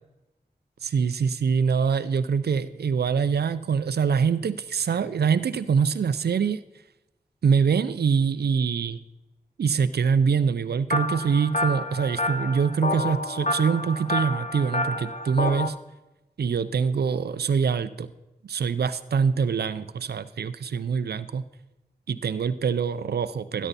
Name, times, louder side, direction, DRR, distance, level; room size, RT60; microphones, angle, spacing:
voice 1, 0.8-6.6 7.4-9.0 9.6-15.8 16.4-18.1 18.4-21.4 22.1-23.7, right 6 dB, 85° right, 13 dB, 0.5 m, -24 dB
sound 1, 10.9-15.7, left 2 dB, 45° left, 1.0 m, -29 dB
13.0 x 10.0 x 4.1 m, 0.98 s
cardioid pair, 40°, 16 cm